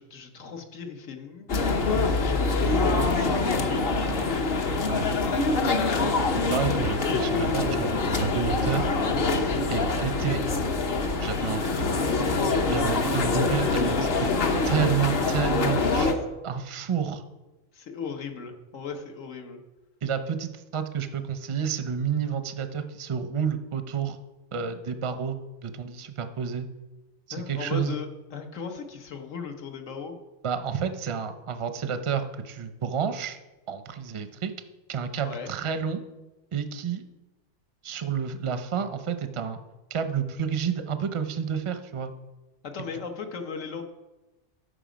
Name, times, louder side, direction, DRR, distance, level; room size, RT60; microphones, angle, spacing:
voice 1, 0.0-1.5 2.0-4.2 4.8-5.6 14.8-15.0 16.1-16.2 17.7-19.6 27.3-30.2 35.2-35.5 42.6-43.9, left 5 dB, 75° left, 5 dB, 1.4 m, -37 dB
sound 1, 1.5-16.1, left 3 dB, 50° left, 1.0 m, -25 dB
voice 2, 6.4-8.9 9.7-10.4 11.2-12.0 12.7-14.3 14.7-16.1 16.4-17.2 20.0-24.2 24.5-26.7 27.3-28.0 30.4-33.4 33.7-34.5 34.9-36.0 36.5-37.0 37.8-39.6 39.9-42.1, right 7 dB, 35° right, 9 dB, 0.5 m, -30 dB
13.0 x 5.0 x 5.1 m, 1.1 s
omnidirectional pair, 1.4 m